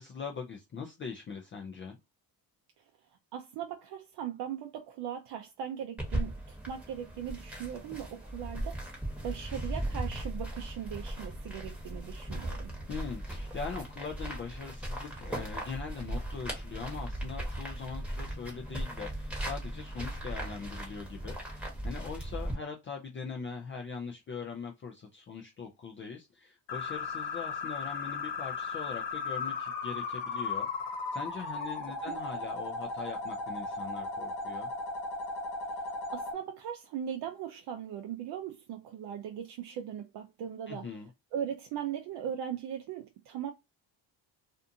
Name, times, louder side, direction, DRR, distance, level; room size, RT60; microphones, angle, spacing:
voice 1, 0.0-2.0 12.9-21.3 21.8-30.7 31.1-34.7 40.7-41.1, left 5 dB, 30° left, 0.4 m, -41 dB
voice 2, 3.3-8.8 9.2-12.7 32.1-32.2 35.8-40.9 41.3-43.5, right 9 dB, 65° right, 0.5 m, -39 dB
sound 1, 6.0-22.5, right 1 dB, 5° right, 1.0 m, -38 dB
sound 2, 26.7-36.3, left 4 dB, 65° left, 1.1 m, -36 dB
2.6 x 2.4 x 2.5 m
cardioid pair, 110°, 44 cm